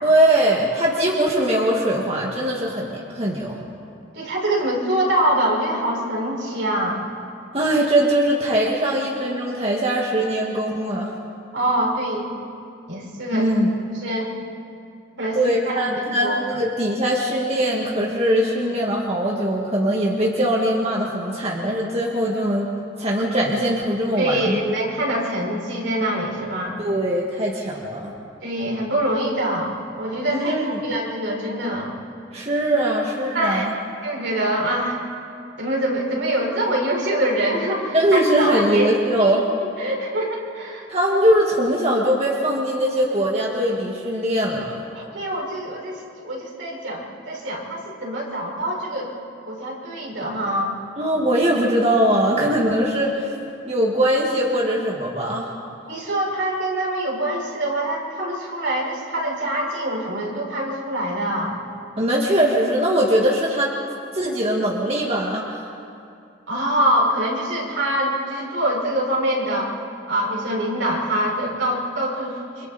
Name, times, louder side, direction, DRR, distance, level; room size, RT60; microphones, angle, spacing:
voice 1, 0.0-3.6 7.5-11.1 13.3-13.7 15.3-22.7 23.0-24.6 26.8-28.1 30.3-30.8 32.3-33.7 37.9-39.5 40.9-44.8 51.0-53.3 53.7-55.5 62.0-63.7 64.1-65.6, right 1 dB, 30° right, -3 dB, 2.0 m, -21 dB
voice 2, 4.1-7.0 11.5-12.4 12.9-13.5 14.0-14.3 15.2-16.4 24.2-26.8 28.4-32.0 33.3-33.7 34.0-35.0 35.6-38.9 39.2-39.3 39.8-40.9 44.9-49.1 49.5-50.7 55.9-61.6 66.5-69.7 70.1-72.7, right 1 dB, 75° right, -2 dB, 5.5 m, -24 dB
29.5 x 26.0 x 4.3 m, 2.6 s
head